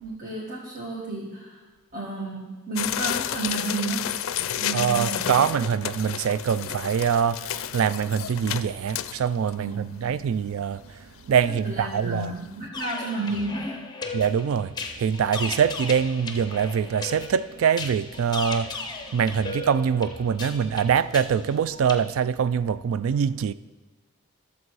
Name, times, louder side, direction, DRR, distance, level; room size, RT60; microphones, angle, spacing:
voice 1, 0.0-1.6 1.9-4.2 4.6-5.6 9.6-10.1 11.5-13.9, right 2 dB, 40° right, 1.5 m, -32 dB
sound 1, 2.8-9.5 10.0-10.1 10.3-10.4 11.0-11.2 11.6-11.7 12.0-12.1, left 10 dB, 70° left, 0.4 m, -31 dB
voice 2, 4.7-12.3 14.1-23.5, right 7 dB, 75° right, 0.3 m, -24 dB
sound 2, 12.7-22.0, left 4 dB, 20° left, 0.6 m, -36 dB
12.5 x 7.0 x 4.7 m
head